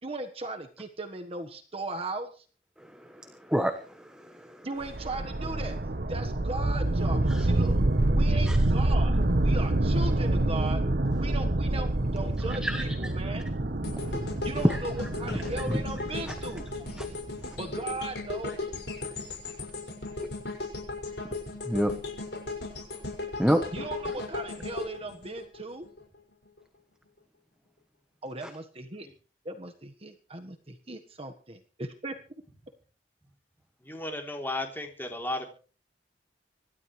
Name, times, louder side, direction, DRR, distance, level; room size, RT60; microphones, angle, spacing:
voice 1, 0.0-2.4 4.6-5.8 6.1-7.8 8.1-10.8 11.2-13.4 14.4-16.7 17.6-18.5 23.7-25.8 28.2-29.1 29.4-32.1, right 2 dB, 35° right, 5 dB, 1.4 m, -37 dB
voice 2, 2.8-4.7 7.3-7.5 8.5-8.6 12.6-13.1 14.6-14.8 15.7-15.8 17.0-17.1 17.4-17.6 21.7-21.9 23.4-23.6, equal, 5° right, 6 dB, 1.1 m, -28 dB
sound 1, 4.8-17.9, right 1 dB, 55° right, 1.1 m, -27 dB
sound 2, 13.8-26.0 26.4-26.6, left 3 dB, 70° left, 6.2 m, -37 dB
voice 3, 33.8-35.5, left 2 dB, 10° left, 3 dB, 3.3 m, -34 dB
25.5 x 12.5 x 3.3 m, 0.39 s
head